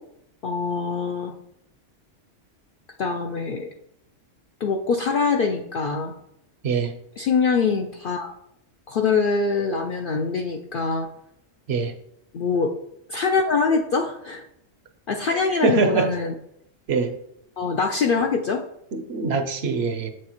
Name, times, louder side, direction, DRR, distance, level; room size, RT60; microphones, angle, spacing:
voice 1, 0.4-1.3 3.0-3.7 4.6-6.1 7.2-8.3 8.9-11.1 12.3-12.7 13.1-14.4 15.1-16.3 17.6-18.6, left 4 dB, 65° left, 3 dB, 0.5 m, -23 dB
voice 2, 15.3-16.1 16.9-17.1 18.9-20.1, right 4 dB, 60° right, 7 dB, 0.8 m, -23 dB
7.6 x 6.3 x 3.0 m, 0.77 s
omnidirectional pair, 1.3 m